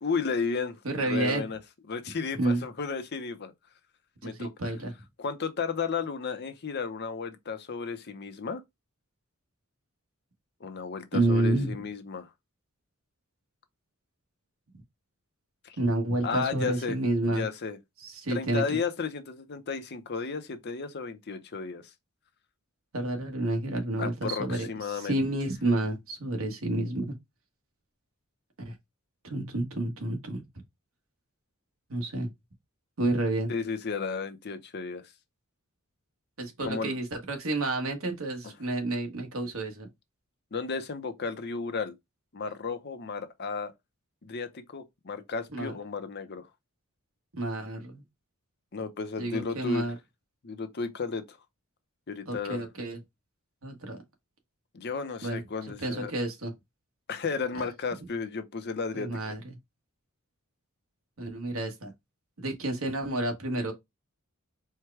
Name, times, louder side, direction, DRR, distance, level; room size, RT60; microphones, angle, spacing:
voice 1, 0.0-0.8 1.1-1.6 1.9-3.5 4.2-4.5 5.2-8.6 10.6-12.3 15.6-15.8 16.2-17.0 17.2-17.8 18.3-21.8 24.0-25.2 33.5-35.0 36.6-37.0 40.5-41.9 42.3-43.7 44.2-46.5 48.7-49.9 50.4-51.4 52.1-52.6 54.7-56.1 57.1-59.1, left 5 dB, 50° left, 0.7 m, -33 dB
voice 2, 0.8-1.4 2.4-2.6 4.2-4.9 11.1-11.8 15.8-17.4 18.0-18.6 22.9-27.1 28.6-28.7 29.2-30.6 31.9-32.3 33.0-33.5 36.4-39.9 45.5-45.8 47.3-48.0 49.2-49.9 52.3-53.0 53.6-54.0 55.2-55.4 55.8-56.5 57.5-57.6 58.9-59.6 61.2-61.9 62.4-63.7, right 2 dB, 65° right, 1.3 m, -30 dB
4.6 x 2.2 x 4.6 m
head